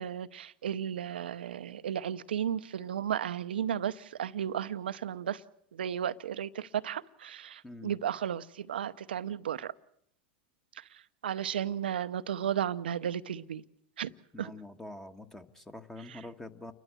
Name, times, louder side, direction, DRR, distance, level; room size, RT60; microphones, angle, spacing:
voice 1, 0.0-5.4 5.7-9.7 10.8-13.6 14.0-14.1 14.4-14.5 16.0-16.3, right 9 dB, 85° right, 0.7 m, -34 dB
voice 2, 7.6-7.9 14.3-16.7, left 2 dB, 5° left, 1.4 m, -45 dB
29.5 x 12.5 x 7.5 m
hypercardioid pair, 100°, 5 cm